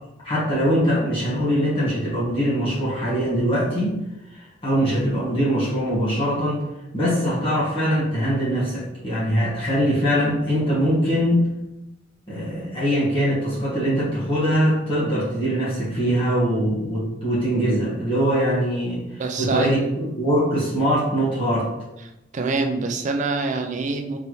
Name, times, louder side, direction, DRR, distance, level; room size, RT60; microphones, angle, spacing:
voice 1, 0.2-4.0 4.3-6.6 6.9-11.5 12.3-21.7, equal, 30° left, -9 dB, 1.2 m, -22 dB
voice 2, 19.2-19.7 22.3-24.2, right 3 dB, 40° right, 5 dB, 0.4 m, -25 dB
4.1 x 3.2 x 3.0 m, 0.96 s
head